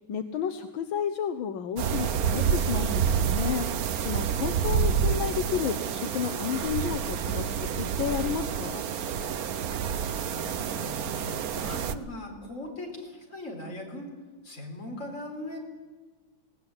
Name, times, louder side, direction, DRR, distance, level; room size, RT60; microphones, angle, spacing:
voice 1, 0.1-8.8, left 8 dB, 75° left, 9 dB, 1.7 m, -32 dB
sound 1, 1.8-11.9, right 7 dB, 55° right, 1.1 m, -28 dB
voice 2, 10.2-14.1 14.4-15.6, left 1 dB, 35° left, 1 dB, 4.8 m, -39 dB
19.0 x 18.0 x 9.8 m, 1.4 s
omnidirectional pair, 2.2 m